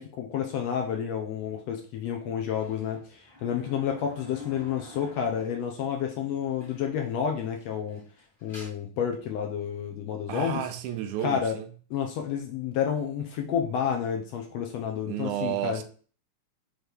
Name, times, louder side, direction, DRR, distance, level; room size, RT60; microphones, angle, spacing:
voice 1, 0.0-8.0 8.4-10.7 11.2-11.6 11.9-15.8, left 8 dB, 75° left, 1.7 m, -30 dB
sound 1, 2.6-5.8 6.1-6.2 6.6-7.1 7.4-8.7, left 3 dB, 15° left, 1.0 m, -46 dB
voice 2, 10.3-11.7 15.1-15.8, right 11 dB, 80° right, 2.1 m, -32 dB
6.4 x 3.2 x 5.2 m
omnidirectional pair, 3.5 m